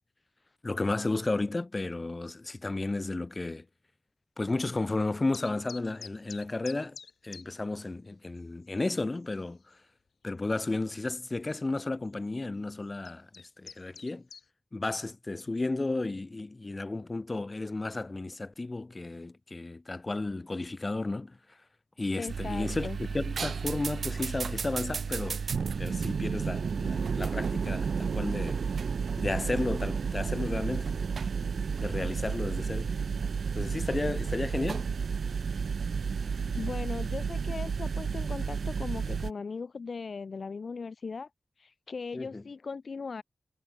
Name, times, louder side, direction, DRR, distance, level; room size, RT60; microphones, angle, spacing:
voice 1, 0.6-3.6 4.4-7.0 7.2-9.8 10.2-14.3 14.7-21.4 22.0-25.4 25.8-28.6 29.2-30.9 31.8-32.9 33.5-34.9 42.1-42.4, left 2 dB, 35° left, 2.5 m, -33 dB
sound 1, 5.3-7.4 7.7-7.8 8.4-8.5 8.7-9.1 9.7-9.8 11.2-11.3 12.1-12.3 12.8-14.4, left 5 dB, 90° left, 1.4 m, -46 dB
voice 2, 22.2-23.0 36.5-41.3 41.6-43.2, left 4 dB, 70° left, 0.9 m, -38 dB
sound 2, 22.3-39.3, right 6 dB, 90° right, 0.6 m, -32 dB
wide cardioid pair, 75°, 0 cm